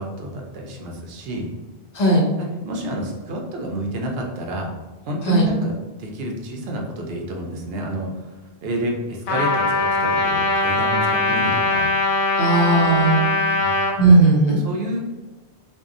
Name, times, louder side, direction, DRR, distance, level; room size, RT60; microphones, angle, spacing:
voice 1, 0.0-1.5 2.4-4.7 5.0-8.3 8.6-11.9 13.5-13.7 14.6-15.0, right 1 dB, 70° right, 1 dB, 0.8 m, -29 dB
voice 2, 1.9-2.2 5.2-5.5 12.4-13.3 14.0-14.6, right 2 dB, 45° left, -2 dB, 0.6 m, -16 dB
Trumpet, 9.3-13.9, left 2 dB, 75° left, 0.8 m, -21 dB
2.6 x 2.2 x 2.4 m, 1.2 s
omnidirectional pair, 1.1 m